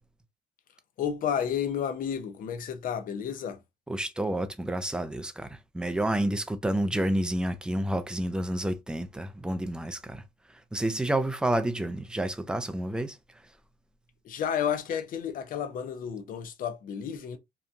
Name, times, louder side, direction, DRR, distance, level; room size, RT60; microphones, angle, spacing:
voice 1, 1.0-3.6 14.2-17.4, left 8 dB, 55° left, 0.6 m, -31 dB
voice 2, 3.9-10.2 10.5-13.2, right 1 dB, 5° right, 0.4 m, -29 dB
2.8 x 2.2 x 2.5 m
cardioid pair, 110°, 17 cm